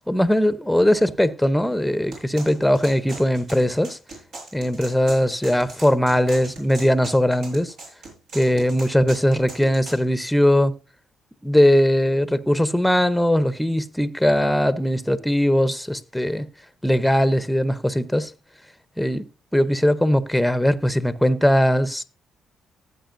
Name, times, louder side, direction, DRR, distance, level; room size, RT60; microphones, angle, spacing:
voice 1, 0.1-4.0 4.5-7.7 8.3-10.7 11.4-16.5 16.8-18.3 19.0-19.2 19.5-22.0, equal, 5° left, 0.8 m, -20 dB
sound 1, 2.1-10.0, right 2 dB, 80° right, 6.0 m, -39 dB
15.0 x 8.6 x 2.6 m
cardioid pair, 90°, 0 cm